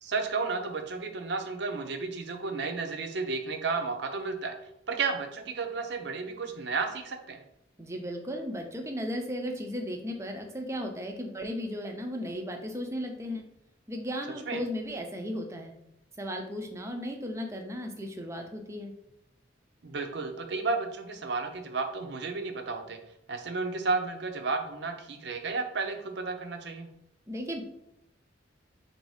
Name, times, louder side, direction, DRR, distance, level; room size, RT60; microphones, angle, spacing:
voice 1, 0.0-4.5 4.9-7.4 14.5-14.6 19.8-23.0 23.3-26.9, right 4 dB, 60° right, 6 dB, 0.6 m, -32 dB
voice 2, 7.8-13.4 13.9-15.7 16.2-18.9 27.3-27.6, equal, 15° right, 3 dB, 0.5 m, -35 dB
4.0 x 2.7 x 4.8 m, 0.80 s
head